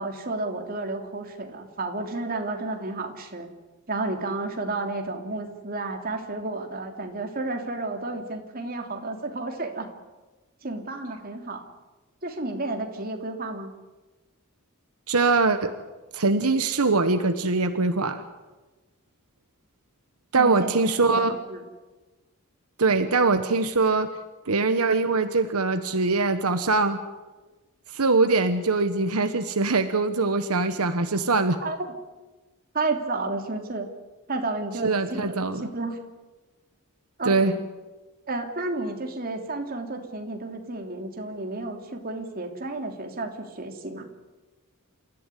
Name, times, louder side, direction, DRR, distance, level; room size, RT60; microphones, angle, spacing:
voice 1, 0.0-3.5 3.9-9.9 10.6-11.6 12.2-13.7 20.3-21.6 31.6-31.9 32.7-33.9 34.3-36.0 37.2-37.6 38.3-44.1, right 2 dB, 40° right, 3 dB, 3.3 m, -31 dB
voice 2, 15.1-15.7 16.1-18.2 20.3-21.4 22.8-24.1 24.5-27.0 27.9-31.6 34.8-35.6 37.2-37.5, right 3 dB, 80° right, 9 dB, 1.3 m, -22 dB
28.5 x 15.0 x 10.0 m, 1.2 s
head